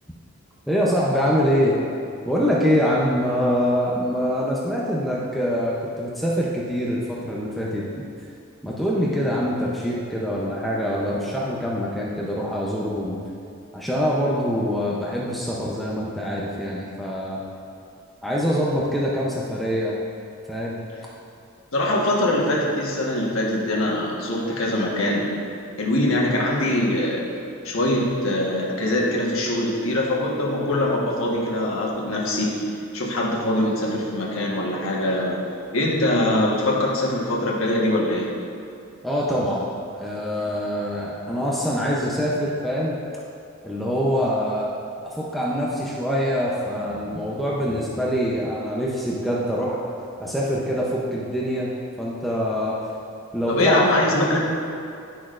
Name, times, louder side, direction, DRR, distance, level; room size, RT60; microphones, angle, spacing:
voice 1, 0.7-1.8 2.2-8.1 8.6-13.2 13.7-17.4 18.2-20.0 20.5-20.8 39.0-39.7 39.9-43.0 43.6-44.7 45.1-49.9 50.2-51.7 52.0-52.8 53.3-53.8, equal, ahead, -6 dB, 0.6 m, -24 dB
voice 2, 21.7-25.3 25.8-27.2 27.6-32.6 32.9-35.4 35.7-38.3 53.5-54.4, left 1 dB, 70° left, -3 dB, 1.3 m, -23 dB
11.0 x 6.0 x 2.5 m, 2.6 s
head